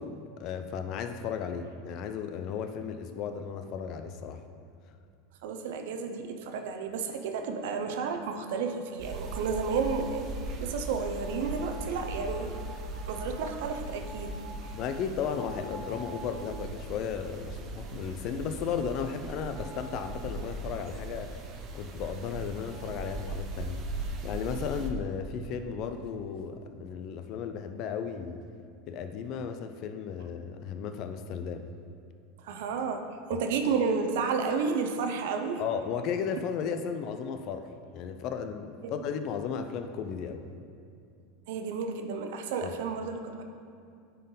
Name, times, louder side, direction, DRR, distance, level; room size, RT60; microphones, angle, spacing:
voice 1, 0.0-4.4 14.7-21.3 21.7-28.4 28.9-31.6 33.3-33.4 35.6-40.4 42.6-42.7, left 7 dB, 50° left, 8 dB, 0.5 m, -35 dB
voice 2, 5.4-10.3 10.6-12.5 13.1-14.3 14.6-14.7 32.4-33.0 33.3-35.6 38.8-39.0 41.5-43.4, right 5 dB, 75° right, 6 dB, 0.7 m, -31 dB
sound 1, 7.6-8.6 9.1-10.0 11.2-16.8 17.3-17.4 17.8-17.9 19.5-20.0 22.3-22.4 22.6-23.0, right 2 dB, 20° left, 1.7 m, -49 dB
sound 2, 9.0-24.9, right 2 dB, 45° right, 0.8 m, -39 dB
10.0 x 4.5 x 3.9 m, 2.4 s
supercardioid pair, 105°, 0 cm